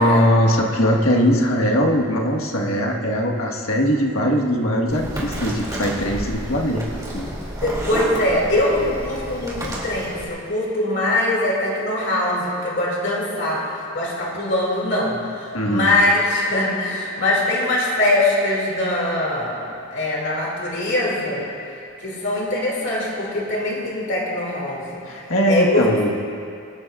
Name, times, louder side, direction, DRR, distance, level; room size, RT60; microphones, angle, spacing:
voice 1, 0.0-6.8 7.1-7.3 15.5-15.9 25.1-26.1, equal, 75° left, 0 dB, 1.5 m, -20 dB
sound 1, 4.9-10.3, equal, 15° right, 2.6 m, -30 dB
voice 2, 7.6-21.5 22.0-24.9 25.2-25.9, left 1 dB, 55° left, -3 dB, 2.5 m, -22 dB
24.5 x 13.0 x 2.5 m, 2.5 s
head